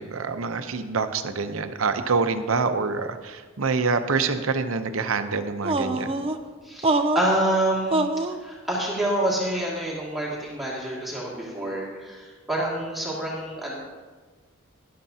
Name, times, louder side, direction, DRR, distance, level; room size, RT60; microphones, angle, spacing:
voice 1, 0.0-6.1, right 4 dB, 85° right, 9 dB, 0.7 m, -26 dB
sound 1, 5.6-6.4 6.8-7.4 7.9-8.4, right 2 dB, 30° right, 0.5 m, -24 dB
voice 2, 6.6-13.7, right 1 dB, ahead, -6 dB, 2.2 m, -27 dB
13.0 x 11.5 x 2.8 m, 1.4 s
head